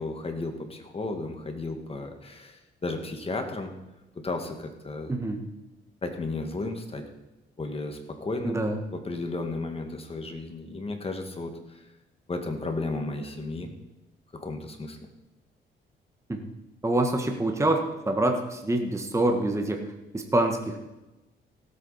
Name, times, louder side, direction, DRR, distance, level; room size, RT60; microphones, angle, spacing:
voice 1, 0.0-3.7 4.2-5.1 6.0-7.1 7.6-8.6 8.9-11.9 12.3-13.7 14.3-15.0, left 2 dB, 30° left, 5 dB, 2.0 m, -34 dB
voice 2, 5.1-5.4 8.4-8.8 16.3-16.4 16.8-19.8 20.1-20.7, right 1 dB, 15° right, 3 dB, 1.5 m, -25 dB
17.0 x 8.3 x 4.3 m, 1.0 s
cardioid pair, 90°, 20 cm